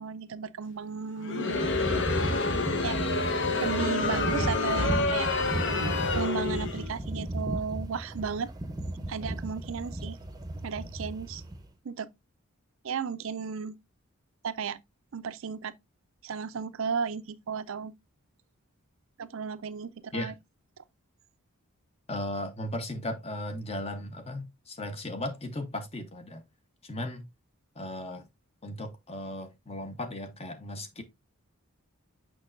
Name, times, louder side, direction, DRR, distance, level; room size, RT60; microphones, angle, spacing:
voice 1, 0.0-1.7 2.8-3.0 3.6-5.3 6.1-8.5 9.1-10.2 10.6-11.4 11.8-12.1 12.8-13.7 14.4-14.8 15.1-15.7 16.2-17.9 19.2-20.3, right 6 dB, 60° right, 0.5 m, -34 dB
Crowd, 1.2-6.9, left 3 dB, 55° left, 0.9 m, -28 dB
sound 1, 1.5-11.7, right 1 dB, 15° right, 0.7 m, -34 dB
voice 2, 22.1-26.4 26.8-27.3 27.8-28.3 28.6-31.0, left 1 dB, 30° left, 0.9 m, -36 dB
6.3 x 6.0 x 2.5 m
head